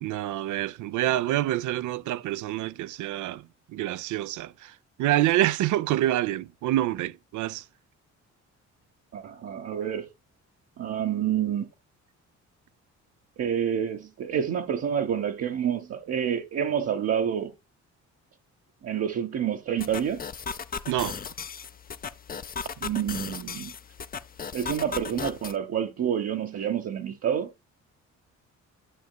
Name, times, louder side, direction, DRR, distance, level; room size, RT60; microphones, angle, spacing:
voice 1, 0.0-3.4 3.7-4.7 5.0-7.6 20.9-21.2, right 14 dB, 75° right, 0.5 m, -27 dB
voice 2, 9.1-10.1 10.8-11.7 13.4-17.5 18.8-20.2 22.8-23.7 24.5-27.5, right 9 dB, 55° right, 0.9 m, -28 dB
sound 1, 19.8-25.6, left 6 dB, 30° left, 0.6 m, -36 dB
11.0 x 6.4 x 2.2 m
cardioid pair, 90°, 30 cm